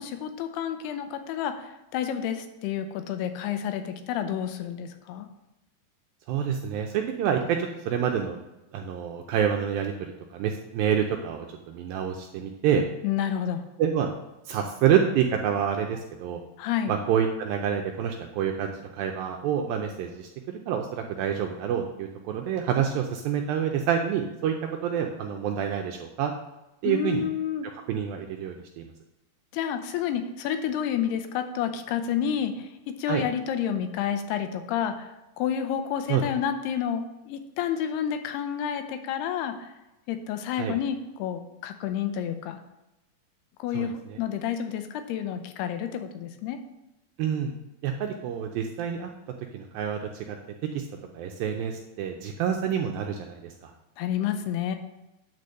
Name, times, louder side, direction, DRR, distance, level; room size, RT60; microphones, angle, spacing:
voice 1, 0.0-5.3 13.0-13.6 16.6-16.9 26.8-27.7 29.5-35.1 35.4-39.7 40.1-42.6 43.6-46.6 54.0-54.8, left 9 dB, 85° left, 8 dB, 2.6 m, -30 dB
voice 2, 6.3-8.4 8.7-12.8 13.8-14.1 14.5-16.4 16.9-24.6 24.8-26.3 26.8-27.2 27.7-28.9 33.1-33.2 36.1-36.2 40.6-40.7 43.7-44.2 47.2-47.5 47.8-49.1 49.5-50.4 50.7-50.9 51.1-53.7, right 8 dB, 80° right, 3 dB, 2.1 m, -27 dB
9.9 x 4.2 x 6.5 m, 0.97 s
omnidirectional pair, 4.7 m